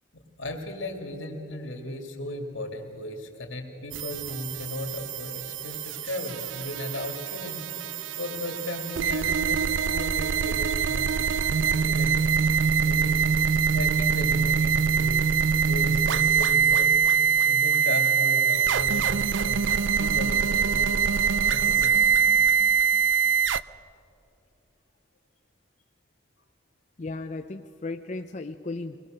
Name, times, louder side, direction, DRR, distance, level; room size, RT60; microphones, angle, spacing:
voice 1, 0.4-7.6 8.2-12.4 12.8-13.2 13.7-17.0 17.5-22.1, left 1 dB, 80° left, 3 dB, 2.7 m, -36 dB
sound 1, 3.9-23.6, right 6 dB, 70° right, 0.4 m, -24 dB
voice 2, 27.0-29.1, left 3 dB, 35° left, 6 dB, 0.5 m, -35 dB
24.0 x 19.5 x 6.6 m, 2.8 s
head